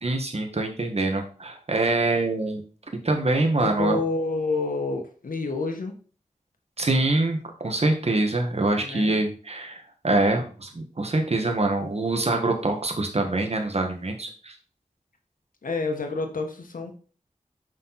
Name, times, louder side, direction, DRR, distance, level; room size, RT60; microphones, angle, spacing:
voice 1, 0.0-2.6 3.0-4.0 6.8-7.4 7.6-14.5, right 2 dB, 50° right, 3 dB, 1.4 m, -24 dB
voice 2, 3.6-6.0 8.8-9.1 15.6-16.9, left 3 dB, 85° left, 4 dB, 1.2 m, -28 dB
5.8 x 5.2 x 4.1 m, 0.40 s
wide cardioid pair, 50°, 14 cm